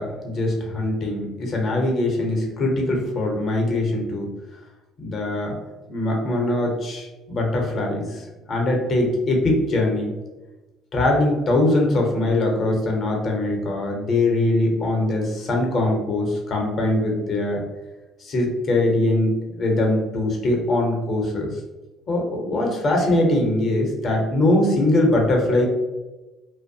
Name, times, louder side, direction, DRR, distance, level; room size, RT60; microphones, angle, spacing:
voice 1, 0.0-4.3 5.0-5.6 5.9-10.1 10.9-17.6 18.2-21.5 22.1-25.7, left 1 dB, 45° left, 0 dB, 0.7 m, -22 dB
2.6 x 2.1 x 2.6 m, 1.1 s
cardioid pair, 100°, 0 cm